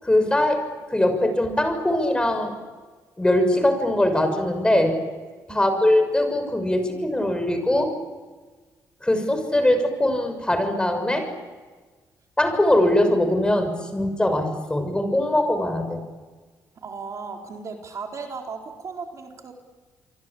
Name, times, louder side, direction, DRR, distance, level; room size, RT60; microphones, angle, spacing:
voice 1, 0.0-2.5 3.2-5.0 5.5-7.9 9.0-11.3 12.4-16.0, left 1 dB, 15° left, 7 dB, 6.6 m, -21 dB
voice 2, 5.5-5.8 16.8-19.5, right 4 dB, 50° right, 2 dB, 4.3 m, -36 dB
28.5 x 24.0 x 8.8 m, 1.4 s
cardioid pair, 80°, 7 cm